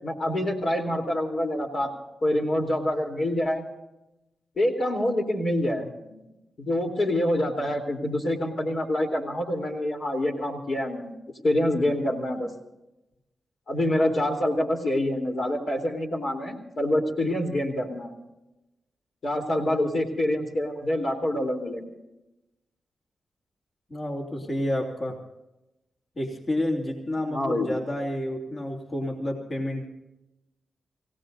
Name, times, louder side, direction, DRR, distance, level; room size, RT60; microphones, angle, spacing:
voice 1, 0.0-1.9 2.2-3.6 4.6-5.9 6.6-11.2 11.4-12.5 13.7-18.1 19.2-21.9 27.3-27.7, left 1 dB, 65° left, 1 dB, 3.6 m, -26 dB
voice 2, 23.9-25.2 26.1-29.9, left 1 dB, 50° left, 1 dB, 3.3 m, -30 dB
28.0 x 17.0 x 2.7 m, 0.94 s
supercardioid pair, 45°, 0 cm